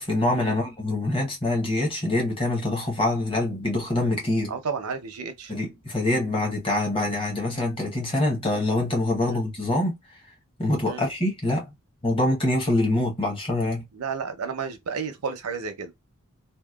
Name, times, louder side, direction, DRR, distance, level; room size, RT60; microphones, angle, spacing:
voice 1, 0.0-4.5 5.5-10.0 10.6-11.7 12.0-13.8, left 2 dB, 25° left, 0.8 m, -25 dB
voice 2, 4.5-5.5 9.2-9.4 10.8-11.0 13.9-15.9, right 5 dB, 85° right, 0.6 m, -32 dB
2.8 x 2.1 x 2.3 m
head